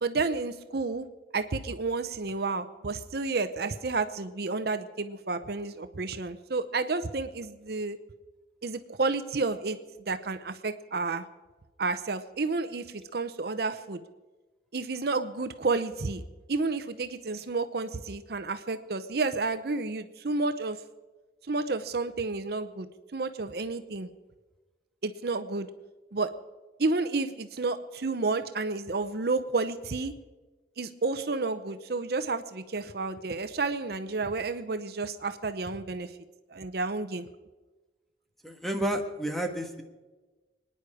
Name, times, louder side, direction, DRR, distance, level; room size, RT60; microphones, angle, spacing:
voice 1, 0.0-1.1 1.3-8.0 8.6-9.8 10.1-11.2 11.8-14.0 14.7-16.2 16.5-20.8 21.5-22.9 23.1-24.1 25.0-25.7 26.1-26.3 26.8-30.1 30.8-36.1 36.5-37.3, right 3 dB, 60° right, 10 dB, 0.8 m, -31 dB
voice 2, 38.4-39.8, right 1 dB, ahead, 4 dB, 1.5 m, -31 dB
26.5 x 10.0 x 5.0 m, 1.2 s
head